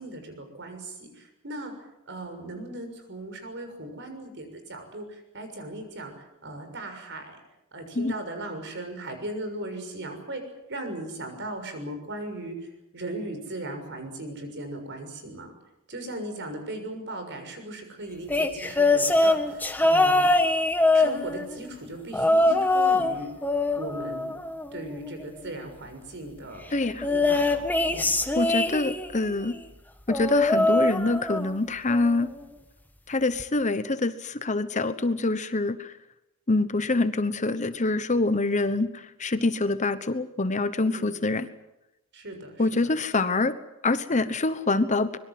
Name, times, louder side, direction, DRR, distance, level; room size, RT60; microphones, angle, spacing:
voice 1, 0.0-1.7 2.1-6.1 6.4-7.3 7.7-10.4 10.7-12.5 12.9-15.5 15.9-20.3 20.9-23.3 23.7-24.3 24.7-26.6 27.0-28.1 39.4-39.5 40.9-41.1 42.1-42.9, right 1 dB, 55° right, 6 dB, 6.4 m, -37 dB
sound 1, 18.3-21.6 22.1-23.1 23.4-25.0 27.0-29.2 30.1-31.6 31.9-32.3 33.4-33.5, left 2 dB, 10° left, 1.6 m, -23 dB
voice 2, 26.7-27.1 28.3-29.6 30.1-32.3 33.1-35.9 36.5-41.5 42.6-43.6 43.8-45.2, left 2 dB, 35° left, 12 dB, 1.1 m, -25 dB
25.0 x 22.5 x 7.7 m, 0.90 s
head